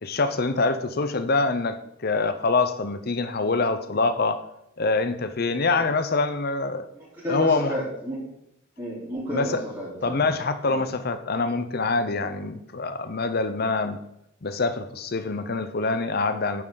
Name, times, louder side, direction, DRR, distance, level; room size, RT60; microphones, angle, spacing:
voice 1, 0.0-4.4 4.8-6.8 7.3-7.7 9.3-9.6 10.0-14.0 14.4-16.6, left 3 dB, 50° left, 10 dB, 0.7 m, -25 dB
voice 2, 6.9-8.2 8.8-10.3 10.6-10.8, equal, 15° right, -12 dB, 3.7 m, -32 dB
9.7 x 7.8 x 3.9 m, 0.79 s
head